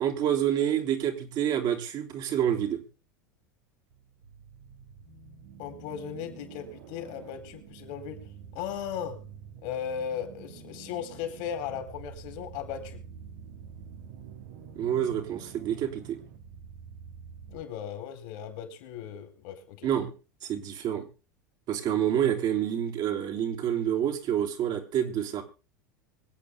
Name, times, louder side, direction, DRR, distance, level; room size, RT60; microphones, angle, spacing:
voice 1, 0.0-2.8 14.7-16.2 19.8-20.1 20.4-21.0 21.7-25.4, right 10 dB, 45° right, 3.4 m, -28 dB
sound 1, 3.9-17.6, right 7 dB, 70° right, 2.4 m, -47 dB
voice 2, 5.6-8.3 8.5-9.2 9.6-13.0 17.5-19.9, left 8 dB, 60° left, 4.1 m, -37 dB
25.0 x 8.8 x 3.7 m
hypercardioid pair, 85°, 10 cm